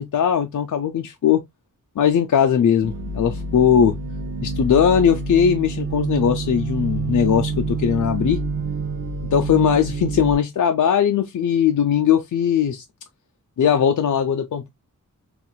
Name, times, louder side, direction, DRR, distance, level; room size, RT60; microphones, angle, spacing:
voice 1, 0.0-1.4 2.0-4.0 4.4-8.4 9.3-12.8 13.6-14.7, left 8 dB, 60° left, 0.5 m, -19 dB
sound 1, 2.8-10.3, right 3 dB, 45° right, 0.5 m, -27 dB
3.8 x 2.4 x 2.2 m
wide cardioid pair, 60°, 33 cm